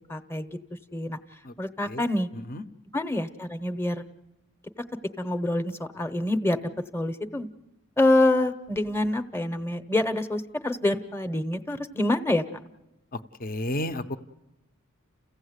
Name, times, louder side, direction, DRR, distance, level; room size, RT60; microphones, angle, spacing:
voice 1, 0.1-0.5 0.9-1.2 1.6-2.3 2.9-4.1 5.2-7.5 8.0-12.4, left 1 dB, 10° left, 10 dB, 0.8 m, -26 dB
voice 2, 2.3-2.6 13.1-14.2, left 1 dB, 40° left, 11 dB, 0.8 m, -32 dB
29.5 x 16.0 x 8.1 m, 0.98 s
head